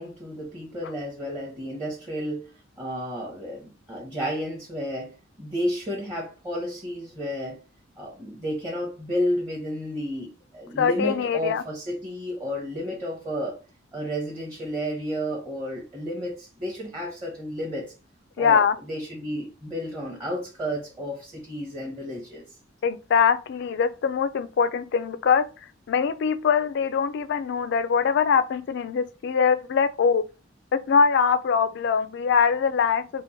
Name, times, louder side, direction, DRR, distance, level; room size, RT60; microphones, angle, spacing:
voice 1, 0.0-2.5 2.8-7.6 8.0-13.6 13.9-17.9 18.4-22.4, equal, 20° right, 0.7 m, -32 dB
voice 2, 10.8-11.6 18.4-18.8 22.8-25.5 25.9-30.2 30.9-33.2, left 6 dB, 60° left, 0.3 m, -22 dB
2.9 x 2.0 x 3.9 m
head